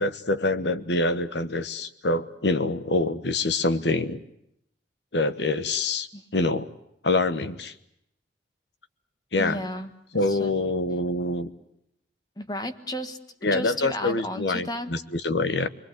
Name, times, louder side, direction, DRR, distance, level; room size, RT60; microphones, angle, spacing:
voice 1, 0.0-4.2 5.1-6.1 6.3-6.7 7.0-7.7 9.3-9.6 10.1-11.5 13.4-15.7, left 2 dB, 75° left, 12 dB, 1.3 m, -25 dB
voice 2, 9.3-9.9 10.3-10.5 12.4-13.2 13.5-14.9, left 1 dB, 20° left, 8 dB, 1.5 m, -33 dB
28.5 x 22.0 x 8.1 m, 0.78 s
head